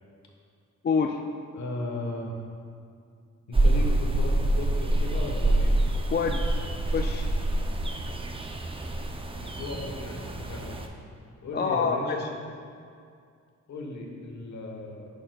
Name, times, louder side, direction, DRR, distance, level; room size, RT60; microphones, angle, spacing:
voice 1, 0.8-1.2 6.1-6.6 6.9-7.3 11.5-12.3, left 5 dB, 35° left, 3 dB, 0.4 m, -27 dB
voice 2, 1.5-2.3 3.5-5.7 9.4-10.8 11.4-12.3 13.7-15.1, left 2 dB, 60° left, 0 dB, 1.2 m, -36 dB
sound 1, 3.5-10.9, right 1 dB, 15° right, 0.5 m, -26 dB
9.8 x 6.7 x 2.3 m, 2.3 s
cardioid pair, 95°, 31 cm